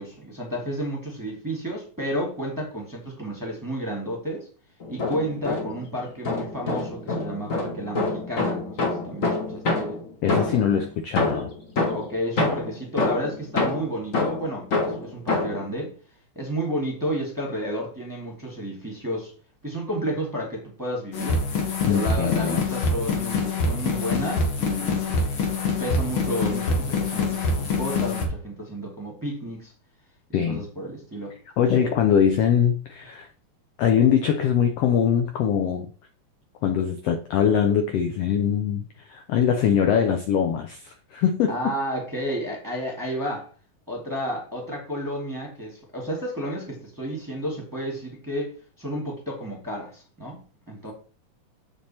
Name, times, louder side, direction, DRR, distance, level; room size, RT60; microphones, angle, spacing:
voice 1, 0.0-4.5 4.9-10.0 11.9-15.9 16.3-19.3 19.6-21.4 21.9-25.3 25.7-29.7 30.5-31.3 41.5-43.5 43.9-48.5 48.8-50.4 50.7-50.9, equal, 10° right, 1.4 m, -31 dB
sound 1, 4.8-5.9 6.2-10.8 11.2-15.7, left 3 dB, 65° left, 0.7 m, -26 dB
voice 2, 10.2-11.5 21.9-22.6 30.3-30.7 31.6-33.3 33.8-35.9 36.6-41.6, left 8 dB, 85° left, 1.3 m, -22 dB
sound 2, 21.1-28.3, left 3 dB, 50° left, 1.9 m, -25 dB
7.5 x 5.4 x 4.3 m
omnidirectional pair, 3.6 m